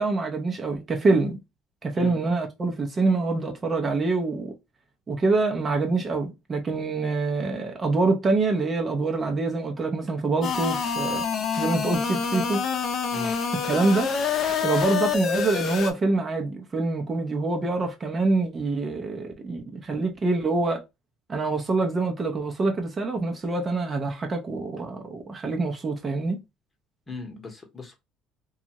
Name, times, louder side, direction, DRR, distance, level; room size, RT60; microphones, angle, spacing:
voice 1, 0.0-1.4 1.8-4.5 5.1-11.2 11.6-12.6 13.7-14.1 14.6-20.8 21.3-26.4, right 3 dB, 30° right, 0.7 m, -25 dB
sound 1, 10.4-15.9, left 6 dB, 50° left, 0.6 m, -27 dB
voice 2, 27.1-28.0, left 3 dB, 25° left, 1.0 m, -38 dB
2.6 x 2.4 x 2.9 m
supercardioid pair, 95°, 0 cm